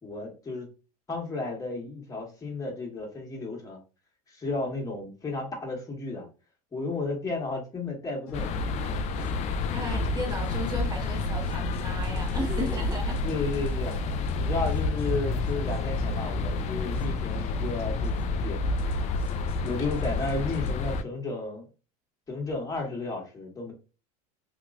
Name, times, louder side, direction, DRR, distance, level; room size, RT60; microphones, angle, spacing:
voice 1, 0.0-0.7 1.1-3.8 4.3-6.3 6.7-8.8 12.3-12.6 13.2-14.0 14.3-18.6 19.6-21.7 22.3-23.7, left 3 dB, 15° left, 1.5 m, -33 dB
sound 1, 8.3-20.7, left 2 dB, 70° left, 0.9 m, -45 dB
sound 2, 8.3-21.0, left 3 dB, 35° left, 0.4 m, -29 dB
voice 2, 9.7-13.2, equal, 20° right, 1.6 m, -35 dB
3.0 x 2.9 x 2.5 m
hypercardioid pair, 100°, 19 cm